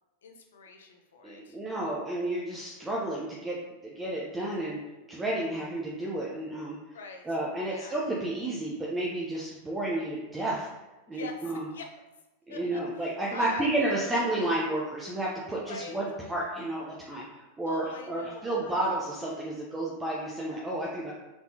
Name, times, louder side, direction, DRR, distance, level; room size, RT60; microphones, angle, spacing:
voice 1, 0.2-1.6 6.9-8.0 11.1-11.9 12.5-13.9 15.6-16.0 17.7-18.7, left 3 dB, 75° left, 3 dB, 0.6 m, -43 dB
voice 2, 1.2-3.6 3.8-4.8 5.1-6.8 7.3-10.7 11.1-11.6 12.5-21.1, right 1 dB, 15° right, -4 dB, 0.7 m, -31 dB
4.3 x 3.5 x 2.8 m, 1.1 s
hypercardioid pair, 95°, 0 cm